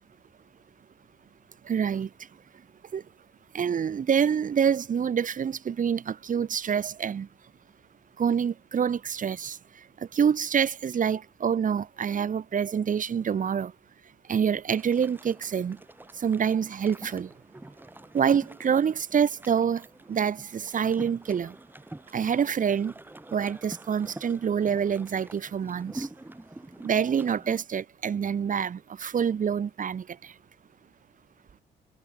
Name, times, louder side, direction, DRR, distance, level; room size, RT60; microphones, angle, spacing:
voice 1, 1.6-2.1 2.9-3.0 3.5-7.3 8.2-9.6 10.1-13.7 14.3-15.8 16.2-17.3 18.1-21.5 22.1-22.9 23.3-26.1 26.8-30.3, right 7 dB, 40° right, 1.1 m, -26 dB
sound 1, 14.7-27.6, right 1 dB, 10° right, 2.6 m, -46 dB
cardioid pair, 90°, 20 cm